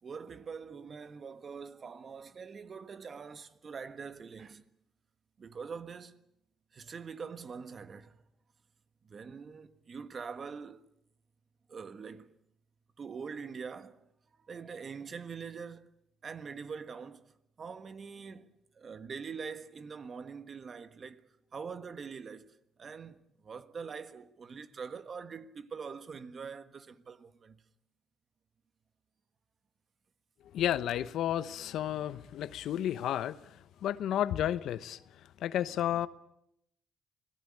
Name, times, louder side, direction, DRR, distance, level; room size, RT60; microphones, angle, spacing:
voice 1, 0.0-4.7 5.4-6.2 6.7-8.2 9.0-10.9 11.7-12.3 13.0-14.1 14.5-15.9 16.2-17.3 17.6-27.6, right 5 dB, 45° right, 1.5 m, -44 dB
voice 2, 30.5-35.0 35.4-36.1, left 11 dB, 80° left, 0.9 m, -32 dB
25.5 x 17.5 x 8.7 m
cardioid pair, 90°, 0 cm